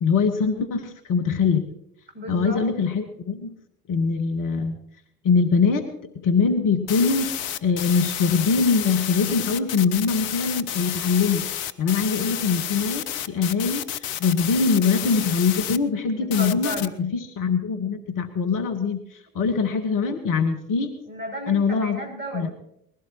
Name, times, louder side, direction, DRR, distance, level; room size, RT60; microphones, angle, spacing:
voice 1, 0.0-1.6 2.3-3.5 3.9-4.8 5.2-11.4 11.8-20.9 21.5-22.0 22.3-22.5, left 5 dB, 45° left, 7 dB, 1.4 m, -23 dB
voice 2, 2.1-2.6 16.1-16.9 21.0-22.5, equal, 25° right, 0 dB, 7.3 m, -34 dB
sound 1, 6.9-15.8 16.3-16.9, left 11 dB, 60° left, 0.8 m, -30 dB
21.0 x 16.0 x 3.0 m, 0.76 s
figure-of-eight pair, 60°, 46 cm